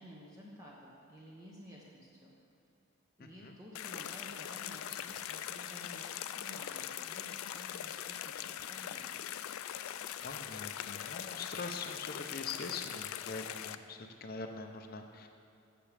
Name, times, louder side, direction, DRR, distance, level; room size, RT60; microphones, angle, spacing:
voice 1, 0.0-2.3 3.2-9.2, equal, 15° right, -5 dB, 0.9 m, -53 dB
voice 2, 3.2-3.6 10.2-15.3, left 4 dB, 45° left, 5 dB, 0.6 m, -43 dB
sound 1, 3.7-13.7, left 10 dB, 80° left, 0.3 m, -42 dB
14.5 x 6.1 x 3.4 m, 2.8 s
head